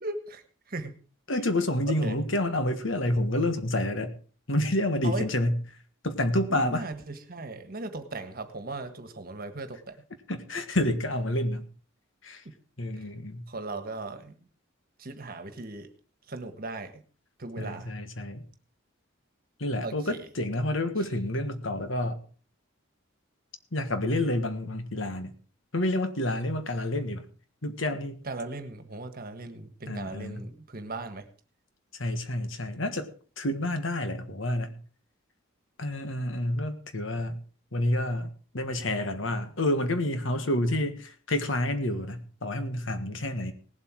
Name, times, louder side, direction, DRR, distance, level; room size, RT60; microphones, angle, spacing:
voice 1, 0.0-0.4 0.7-0.9 2.0-2.2 5.0-5.2 6.5-10.0 12.4-12.5 13.5-14.3 15.0-15.9 16.3-16.9 17.4-17.9 19.8-20.2 28.2-31.2, right 2 dB, 45° right, 9 dB, 1.5 m, -37 dB
voice 2, 1.3-4.1 4.5-5.6 6.0-6.9 10.3-11.6 12.2-12.4 12.8-13.4 17.6-18.4 19.6-22.2 23.7-25.3 25.7-27.3 27.6-28.2 29.8-30.5 32.0-33.1 33.4-34.7 35.8-37.4 37.7-38.3 38.5-43.5, left 1 dB, 65° left, 8 dB, 1.5 m, -29 dB
18.5 x 7.9 x 4.6 m, 0.39 s
head